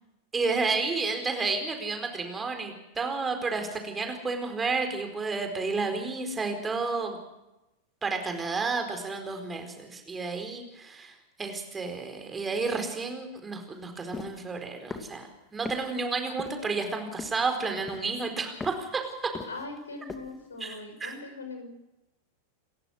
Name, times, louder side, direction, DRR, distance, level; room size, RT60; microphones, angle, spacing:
voice 1, 0.3-7.2 8.0-15.3 15.5-19.0 20.6-20.7 21.0-21.1, right 4 dB, 15° right, 5 dB, 4.4 m, -31 dB
sound 1, 14.1-14.3 14.9-15.2 15.6-15.8 16.4-16.7 17.2-17.5 17.9-18.2 18.6-18.8 19.3-19.8 20.1-20.3, left 4 dB, 15° left, 2.3 m, -38 dB
voice 2, 19.5-21.8, left 3 dB, 75° left, 5 dB, 5.9 m, -41 dB
29.0 x 15.0 x 6.3 m, 0.96 s
figure-of-eight pair, 90°, 0 cm